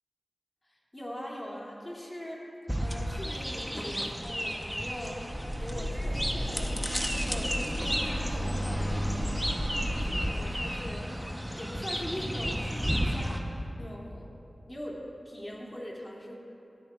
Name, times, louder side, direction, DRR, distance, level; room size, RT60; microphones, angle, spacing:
voice 1, 0.6-2.4 2.8-9.7 10.0-11.2 11.6-13.4 13.8-14.3 14.7-16.3, equal, 30° left, -4 dB, 2.8 m, -41 dB
sound 1, 2.7-13.4, equal, ahead, 1.0 m, -33 dB
sound 2, 5.3-10.4, equal, 55° right, 1.8 m, -34 dB
17.0 x 12.5 x 2.5 m, 2.8 s
cardioid pair, 45°, 0 cm